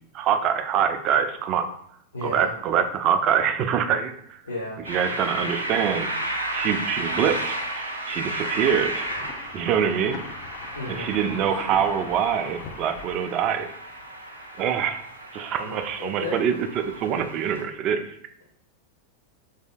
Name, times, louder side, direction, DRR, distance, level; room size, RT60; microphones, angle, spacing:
voice 1, 0.1-1.7 2.2-4.4 4.9-6.1 6.5-9.1 9.5-10.2 10.9-13.8 14.6-15.0 15.3-18.1, right 8 dB, 35° right, 8 dB, 0.3 m, -25 dB
voice 2, 2.1-2.5 4.4-5.4 10.8-11.1 11.7-11.8 15.6-16.4, left 2 dB, 75° left, -5 dB, 0.6 m, -34 dB
sound 1, 4.8-17.6, right 1 dB, 85° right, 0.5 m, -33 dB
sound 2, 8.2-13.2, left 5 dB, 40° left, 0.3 m, -41 dB
3.2 x 2.7 x 2.6 m, 0.71 s
figure-of-eight pair, 90°, 0 cm